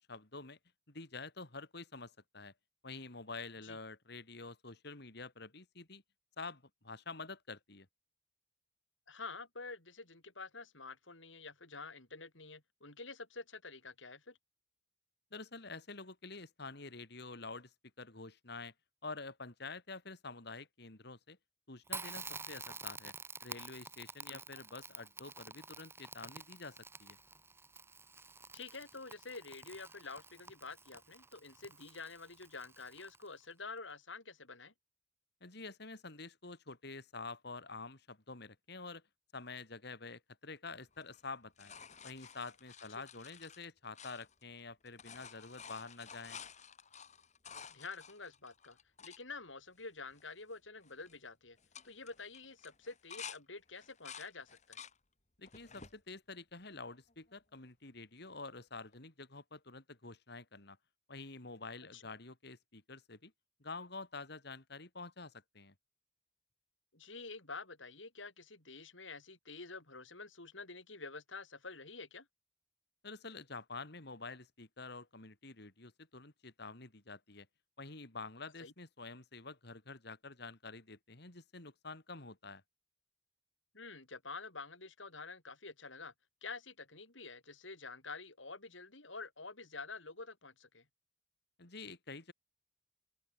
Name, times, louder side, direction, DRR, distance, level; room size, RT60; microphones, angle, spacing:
voice 1, 0.1-0.6 0.9-2.5 2.8-6.0 6.4-7.9 15.3-18.7 19.0-21.4 21.7-23.1 23.4-27.2 35.4-39.0 39.3-41.7 42.0-46.4 55.4-60.8 61.1-63.3 63.6-65.7 73.0-77.5 77.8-82.6 91.6-92.3, left 3 dB, 60° left, 3.2 m, -48 dB
voice 2, 9.1-14.4 24.3-24.6 28.5-34.7 47.7-48.8 49.0-51.6 51.8-54.8 61.9-62.0 66.9-72.3 78.6-78.7 83.7-86.1 86.4-90.8, left 4 dB, 85° left, 7.7 m, -48 dB
Crackle, 21.9-33.4, right 4 dB, 15° right, 4.1 m, -49 dB
sound 1, 40.9-44.6 44.9-49.2 49.8-49.9 50.1-50.5 50.8-51.2 51.6-53.4 53.8-55.0 55.5-56.0 56.6-57.3 58.9-59.0, left 7 dB, 40° left, 6.6 m, -52 dB
open air
head